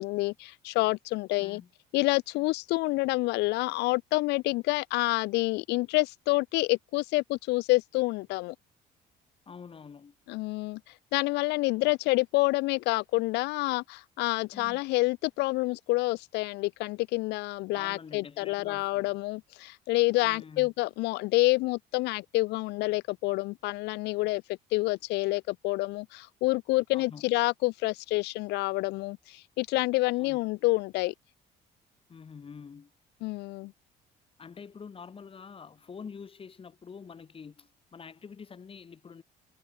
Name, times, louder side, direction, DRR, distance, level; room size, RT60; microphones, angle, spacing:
voice 1, 0.0-1.6 1.9-8.5 10.3-24.4 24.7-31.1 33.2-33.7, left 21 dB, 90° left, 0.6 m, -28 dB
voice 2, 1.4-1.7 9.5-10.1 14.5-14.8 17.7-19.2 20.2-20.7 26.9-27.2 30.2-30.4 32.1-32.9 34.4-39.2, left 6 dB, 35° left, 3.5 m, -46 dB
cardioid pair, 110°, 17 cm